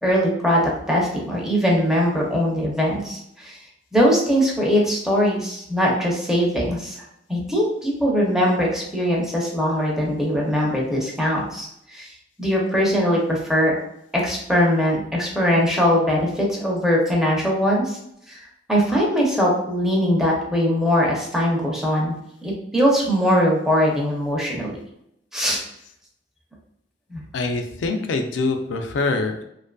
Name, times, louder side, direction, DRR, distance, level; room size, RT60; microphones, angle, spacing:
voice 1, 0.0-3.6 3.9-7.0 7.3-12.1 12.4-13.7 14.1-18.0 18.3-18.4 18.7-22.1 22.4-24.8 25.3-25.6 27.1-27.2, equal, 5° right, -3 dB, 0.5 m, -21 dB
voice 2, 27.3-29.4, left 3 dB, 75° left, 5 dB, 0.3 m, -24 dB
2.5 x 2.4 x 2.2 m, 0.76 s
head